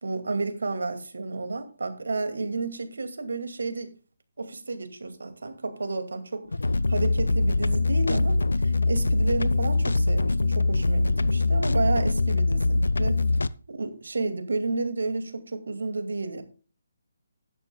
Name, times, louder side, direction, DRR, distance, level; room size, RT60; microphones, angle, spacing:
voice 1, 0.0-3.9 4.4-6.4 6.9-13.2 13.7-16.4, right 3 dB, 70° right, 2.3 m, -31 dB
sound 1, 6.4-13.5, left 3 dB, 75° left, 0.5 m, -23 dB
15.0 x 11.0 x 2.3 m
figure-of-eight pair, 145°, 0 cm